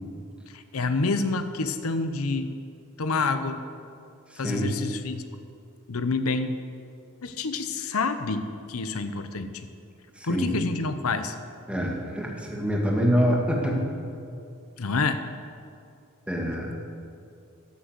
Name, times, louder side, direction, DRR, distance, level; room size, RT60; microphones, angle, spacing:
voice 1, 0.5-2.5 3.0-3.6 4.4-5.2 5.9-6.6 7.2-9.5 10.2-11.3 14.8-15.2, left 3 dB, 70° left, 9 dB, 0.8 m, -28 dB
voice 2, 4.3-4.7 10.2-10.5 11.7-13.8 16.3-16.7, equal, 5° right, -1 dB, 1.8 m, -25 dB
13.5 x 6.4 x 7.8 m, 2.5 s
head